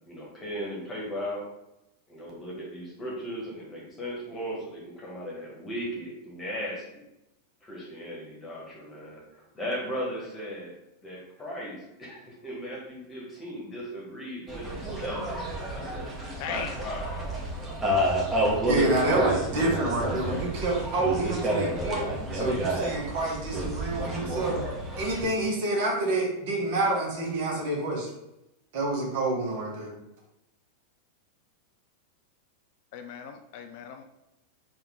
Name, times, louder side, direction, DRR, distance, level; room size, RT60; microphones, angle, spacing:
voice 1, 0.1-1.5 2.1-7.0 7.6-10.8 11.0-15.3 15.7-16.1 16.5-17.1, equal, 20° left, -3 dB, 1.3 m, -37 dB
sound 1, 14.5-25.3, right 1 dB, 15° right, 1.0 m, -30 dB
voice 2, 16.4-16.8 32.9-34.0, left 8 dB, 50° left, 6 dB, 0.3 m, -38 dB
voice 3, 18.7-22.0 22.3-24.6 25.0-28.1 28.7-29.9, right 2 dB, 50° right, -2 dB, 1.1 m, -28 dB
3.5 x 2.6 x 3.6 m, 0.89 s
figure-of-eight pair, 90°, 0 cm